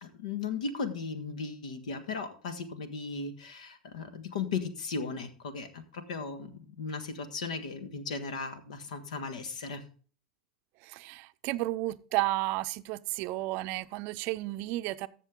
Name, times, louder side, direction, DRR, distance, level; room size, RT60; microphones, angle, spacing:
voice 1, 0.0-6.5 6.8-9.8, left 4 dB, 75° left, 1.5 m, -36 dB
voice 2, 10.8-15.1, right 18 dB, 50° right, 0.5 m, -32 dB
14.5 x 6.7 x 3.7 m
hypercardioid pair, 105°, 4 cm